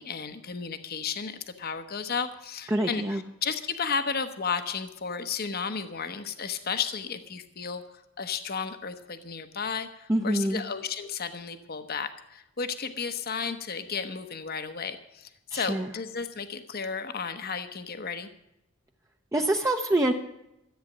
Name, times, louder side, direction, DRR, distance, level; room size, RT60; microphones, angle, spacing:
voice 1, 0.0-18.3, left 6 dB, 45° left, 9 dB, 0.9 m, -33 dB
voice 2, 2.7-3.2 10.1-10.6 15.5-15.9 19.3-20.1, right 1 dB, 15° right, 2 dB, 0.7 m, -25 dB
13.5 x 8.8 x 7.2 m, 0.85 s
head